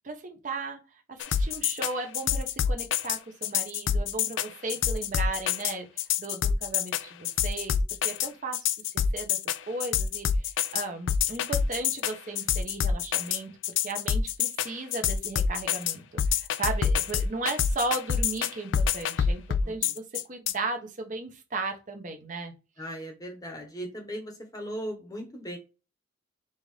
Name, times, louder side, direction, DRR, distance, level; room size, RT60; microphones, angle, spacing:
voice 1, 0.0-0.8 1.1-5.9 6.2-7.8 8.0-8.9 9.1-9.4 9.7-13.5 13.8-22.5, right 3 dB, 40° right, 5 dB, 0.7 m, -36 dB
sound 1, 1.2-20.5, left 8 dB, 70° left, 0.3 m, -27 dB
voice 2, 19.6-19.9 22.8-25.6, equal, 20° left, 3 dB, 0.9 m, -38 dB
5.4 x 2.5 x 3.2 m, 0.30 s
head